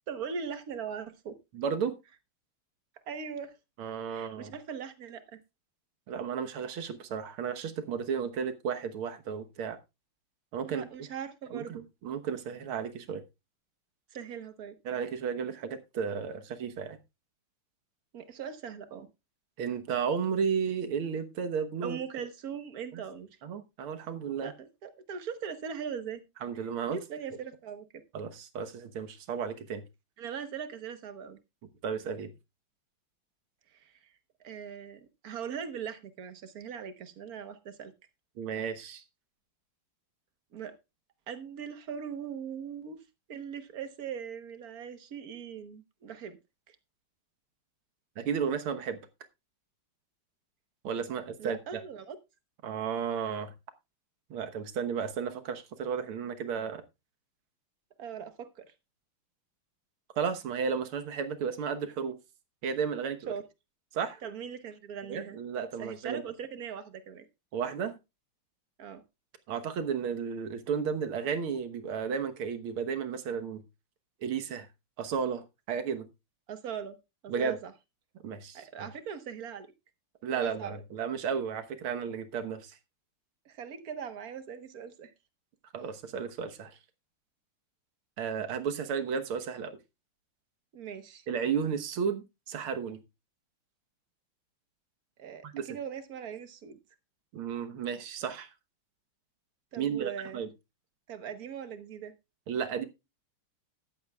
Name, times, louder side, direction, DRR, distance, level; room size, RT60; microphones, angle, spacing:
voice 1, 0.1-1.4 3.1-3.5 4.1-5.4 10.6-11.8 14.1-14.8 18.1-19.1 21.8-23.3 24.4-26.2 26.5-28.0 30.2-31.4 33.7-34.1 34.4-37.9 40.5-40.8 41.3-43.0 43.3-46.4 46.7-46.8 51.4-52.2 58.0-58.7 63.3-63.4 64.2-65.4 65.8-67.3 68.8-69.0 76.5-77.0 77.2-77.7 78.5-79.7 80.3-80.7 83.4-85.1 90.7-91.2 95.2-96.8 99.7-100.4 101.1-102.1, right 7 dB, 50° right, 1.4 m, -40 dB
voice 2, 1.5-2.0 3.8-4.5 6.1-9.8 10.5-10.9 11.5-13.2 14.9-17.0 19.6-22.0 22.9-23.0 23.4-24.5 26.4-27.0 28.1-29.8 31.8-32.3 38.4-39.0 48.2-49.0 50.8-51.6 52.6-53.5 54.3-56.8 60.2-62.2 62.6-63.3 63.9-64.2 65.1-66.2 67.5-68.0 69.5-73.6 74.2-74.7 75.0-76.1 77.3-77.6 78.2-78.9 80.2-82.8 85.7-86.7 88.2-89.8 91.3-93.0 95.4-95.7 97.3-98.5 99.8-100.5 102.5-102.8, right 6 dB, 75° right, 2.0 m, -33 dB
14.0 x 12.5 x 2.3 m
omnidirectional pair, 2.4 m